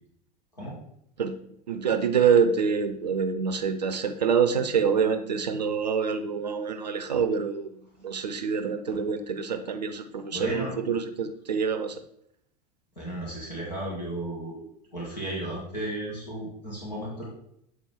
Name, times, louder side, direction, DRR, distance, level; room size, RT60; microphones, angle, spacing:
voice 1, 1.7-7.7 8.0-12.0, right 6 dB, 80° right, 9 dB, 0.5 m, -26 dB
voice 2, 10.3-10.7 13.0-14.6 14.9-17.3, right 1 dB, 85° left, -5 dB, 2.1 m, -34 dB
7.6 x 3.7 x 3.5 m, 0.75 s
figure-of-eight pair, 80°, 21 cm